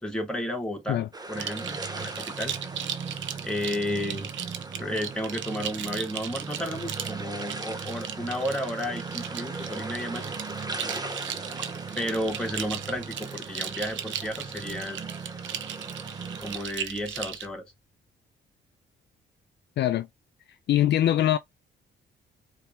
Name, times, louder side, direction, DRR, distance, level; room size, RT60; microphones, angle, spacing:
voice 1, 0.0-2.6 3.4-4.3 4.8-10.4 11.9-15.0 16.4-17.7, equal, 5° left, 1.8 m, -32 dB
sound 1, 1.1-16.6, right 2 dB, 20° right, 0.8 m, -41 dB
sound 2, 1.3-16.6, right 6 dB, 35° right, 0.5 m, -41 dB
sound 3, 1.4-17.5, right 9 dB, 70° right, 0.7 m, -37 dB
voice 2, 19.8-20.1 20.7-21.4, left 12 dB, 60° left, 0.5 m, -22 dB
4.5 x 3.4 x 3.3 m
cardioid pair, 90°, 20 cm